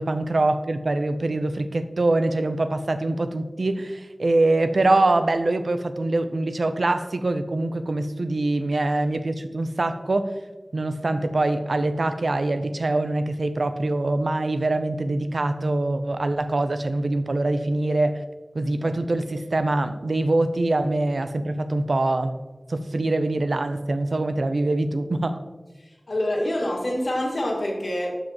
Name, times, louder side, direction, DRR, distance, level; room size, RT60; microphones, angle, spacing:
voice 1, 0.0-10.4 10.7-18.2 18.5-22.4 22.7-25.4, right 2 dB, 75° right, 9 dB, 0.5 m, -24 dB
voice 2, 25.8-28.2, left 1 dB, 70° left, -1 dB, 1.8 m, -26 dB
12.0 x 5.3 x 2.9 m, 1.2 s
wide cardioid pair, 55°, 0 cm